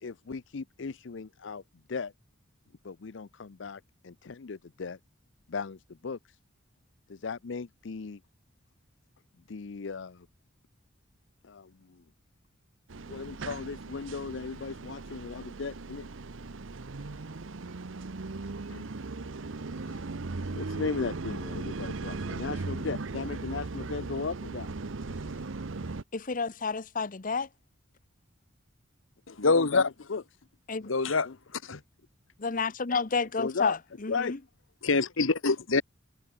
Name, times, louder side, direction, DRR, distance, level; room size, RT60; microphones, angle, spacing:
voice 1, 0.0-1.6 1.9-2.1 2.8-5.0 5.5-6.4 7.1-8.2 9.5-10.3 11.4-12.0 13.1-16.1 17.0-17.2 18.7-18.9 19.8-20.0 20.4-24.7 25.3-25.5 29.3-30.2 31.2-31.4 33.4-33.8 34.1-34.4 35.7-35.8, left 5 dB, 65° left, 0.6 m, -37 dB
sound 1, 12.9-26.0, right 3 dB, 75° right, 0.8 m, -38 dB
voice 2, 26.1-27.5 30.7-30.9 32.4-33.8 34.0-34.4, left 4 dB, 45° left, 0.8 m, -30 dB
voice 3, 29.4-29.8 30.8-31.3 31.6-31.8 34.8-35.8, left 3 dB, 85° left, 1.3 m, -25 dB
head